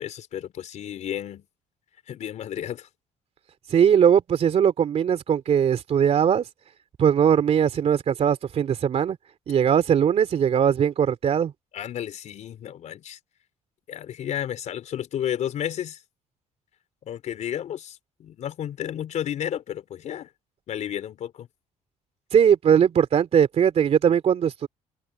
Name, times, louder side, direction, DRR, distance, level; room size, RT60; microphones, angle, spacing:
voice 1, 0.0-1.5 2.1-2.9 11.7-13.2 13.9-16.0 17.0-20.3 20.7-21.5, left 10 dB, 65° left, 4.3 m, -32 dB
voice 2, 3.7-6.5 7.0-9.2 9.5-11.5 22.3-24.7, right 8 dB, 55° right, 2.9 m, -20 dB
cardioid pair, 95°, 13 cm